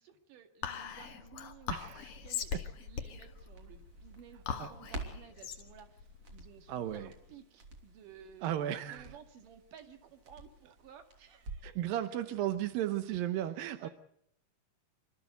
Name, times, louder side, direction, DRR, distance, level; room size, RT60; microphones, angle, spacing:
voice 1, 0.0-8.5 8.9-12.0 13.4-13.9, right 7 dB, 55° right, 7 dB, 3.1 m, -56 dB
Whispering, 0.6-7.3, left 7 dB, 55° left, 1.8 m, -41 dB
voice 2, 1.7-2.1 2.5-2.6 4.6-4.7 6.7-7.1 8.4-9.1 11.6-13.9, right 12 dB, 75° right, 10 dB, 2.1 m, -35 dB
Crackle, 2.1-11.9 12.2-12.3, right 2 dB, 40° right, 3.8 m, -50 dB
27.0 x 13.5 x 8.1 m, 0.72 s
omnidirectional pair, 5.3 m